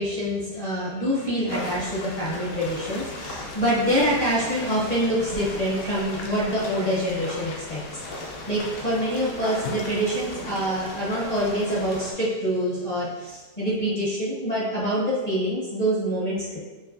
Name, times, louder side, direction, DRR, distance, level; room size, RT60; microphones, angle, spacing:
voice 1, 0.0-16.6, equal, 35° left, -9 dB, 0.7 m, -26 dB
sound 1, 1.5-12.1, left 2 dB, 65° left, 0.9 m, -36 dB
5.5 x 2.7 x 2.6 m, 1.2 s
omnidirectional pair, 2.0 m